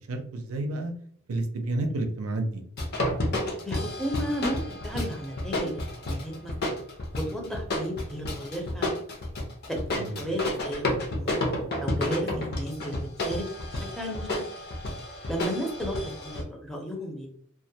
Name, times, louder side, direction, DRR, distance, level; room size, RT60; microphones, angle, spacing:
voice 1, 0.1-0.9 1.3-2.6 10.0-10.4, right 2 dB, 85° right, 5 dB, 0.5 m, -30 dB
sound 1, 2.8-16.4, left 1 dB, 50° left, 0.6 m, -31 dB
voice 2, 3.6-6.8 7.2-8.9 9.7-10.9 11.2-11.5 11.8-13.4 13.8-14.4 15.3-17.3, equal, ahead, 0 dB, 0.5 m, -33 dB
2.2 x 2.1 x 2.7 m, 0.63 s
head